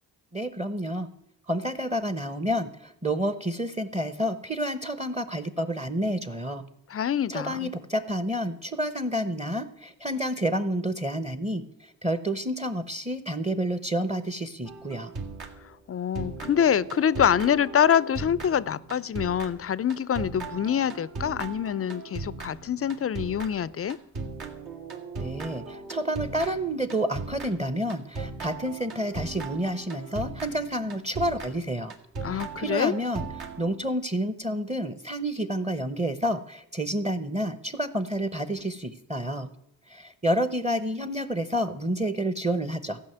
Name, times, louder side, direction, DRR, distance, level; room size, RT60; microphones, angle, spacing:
voice 1, 0.3-1.1 1.5-6.6 7.3-15.1 25.2-31.9 32.3-33.3 33.6-39.5 39.9-43.0, equal, 15° right, 12 dB, 0.8 m, -29 dB
voice 2, 6.9-7.7 15.9-24.0 32.2-32.9, left 8 dB, 35° left, 20 dB, 0.4 m, -25 dB
sound 1, 14.7-15.9 16.1-33.9, right 4 dB, 65° right, 1.9 m, -38 dB
14.0 x 5.4 x 7.9 m, 0.77 s
cardioid pair, 60°, 41 cm